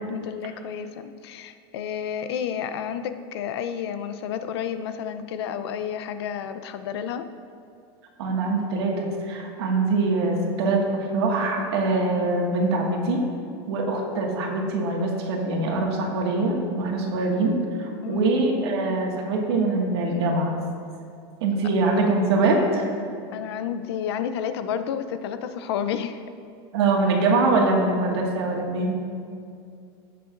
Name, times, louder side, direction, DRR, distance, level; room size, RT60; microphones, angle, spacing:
voice 1, 0.1-7.3 18.0-18.3 23.3-26.2, left 8 dB, 75° left, 10 dB, 0.6 m, -31 dB
voice 2, 8.2-13.2 13.7-17.5 17.8-20.6 21.4-22.8 26.7-29.0, right 3 dB, 90° right, 0 dB, 1.9 m, -23 dB
17.0 x 6.7 x 2.6 m, 2.4 s
supercardioid pair, 175°, 13 cm